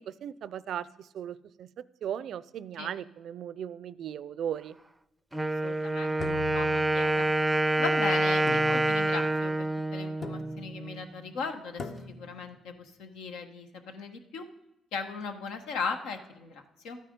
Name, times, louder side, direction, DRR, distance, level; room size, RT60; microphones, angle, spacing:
voice 1, 0.1-0.9 1.1-1.7 2.0-4.8, right 9 dB, 70° right, 19 dB, 0.4 m, -37 dB
Wind instrument woodwind instrument, 5.3-11.1, right 1 dB, 10° right, 0.5 m, -27 dB
voice 2, 5.6-7.3 7.8-14.4 14.9-17.0, left 4 dB, 90° left, 6 dB, 1.2 m, -38 dB
sound 1, 6.2-7.4 8.5-9.3 10.2-10.8 11.8-12.5, left 4 dB, 55° left, 1.0 m, -41 dB
12.5 x 9.1 x 5.2 m, 0.90 s
cardioid pair, 90°, 0 cm